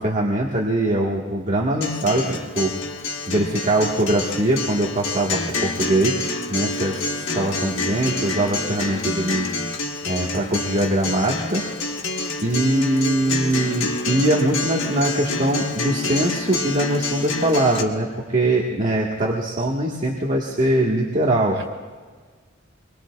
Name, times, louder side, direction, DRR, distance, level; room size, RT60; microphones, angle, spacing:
voice 1, 0.0-2.7 3.3-9.5 10.1-11.7 12.4-21.6, right 1 dB, 40° right, -3 dB, 1.7 m, -22 dB
Acoustic guitar, 1.8-17.8, left 3 dB, 70° left, 1.6 m, -28 dB
voice 2, 10.2-10.7 21.5-21.7, equal, 70° right, 1 dB, 3.8 m, -36 dB
26.0 x 22.5 x 2.5 m, 1.5 s
head